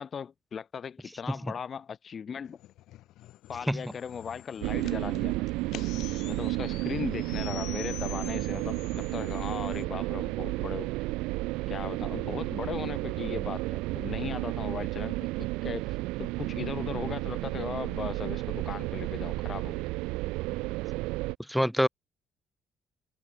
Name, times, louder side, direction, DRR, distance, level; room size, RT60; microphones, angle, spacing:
voice 1, 0.0-2.6 3.5-5.5 6.3-10.9 11.7-19.9, left 7 dB, 45° left, 3.4 m, -38 dB
sound 1, 2.4-9.8, left 15 dB, 75° left, 3.7 m, -46 dB
sound 2, 4.6-21.3, right 22 dB, 85° right, 2.2 m, -32 dB
voice 2, 21.5-21.9, equal, ahead, 0.7 m, -25 dB
supercardioid pair, 70°, 0 cm